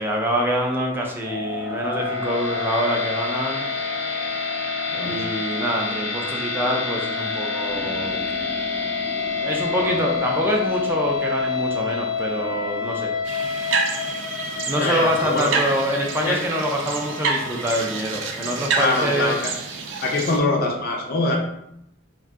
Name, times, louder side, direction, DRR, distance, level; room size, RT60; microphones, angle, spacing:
voice 1, 0.0-3.6 5.0-8.2 9.4-13.1 14.7-19.4, equal, 10° right, 0 dB, 0.4 m, -25 dB
sound 1, 1.2-19.4, left 4 dB, 85° left, 1.0 m, -28 dB
voice 2, 4.9-5.3 9.8-10.1 14.8-15.7 16.2-16.4 18.8-19.5 20.0-21.4, left 2 dB, 55° left, 1 dB, 0.5 m, -24 dB
sound 2, 7.7-12.9, left 1 dB, 30° right, 0.8 m, -41 dB
sound 3, 13.2-20.4, right 4 dB, 80° right, 0.5 m, -28 dB
2.5 x 2.2 x 3.5 m, 0.78 s
head